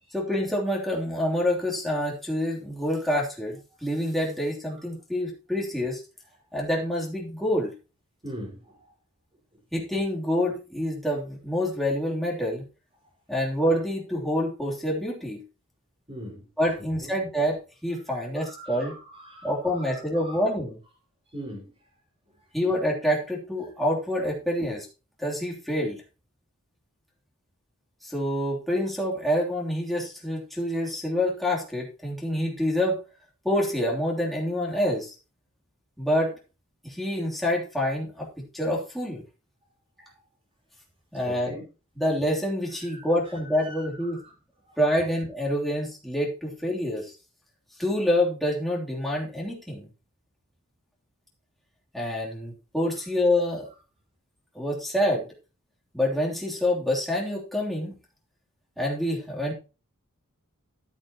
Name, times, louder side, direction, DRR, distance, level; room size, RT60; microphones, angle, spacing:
voice 1, 0.1-6.0 6.5-7.7 9.7-12.6 13.3-15.4 16.6-18.9 19.4-20.8 22.5-24.9 25.2-26.0 28.0-33.0 33.4-35.1 36.0-36.3 36.8-38.3 38.5-39.2 41.1-41.5 41.9-44.2 44.8-47.1 47.8-49.9 51.9-53.7 54.5-55.3 55.9-58.0 58.8-59.5, left 1 dB, ahead, 3.2 m, -27 dB
voice 2, 8.2-8.9 16.1-16.5 17.0-17.2 18.1-20.5 21.3-21.7 40.0-40.1 41.2-41.7 42.7-44.3, equal, 25° right, 4.7 m, -42 dB
14.0 x 8.8 x 3.0 m
head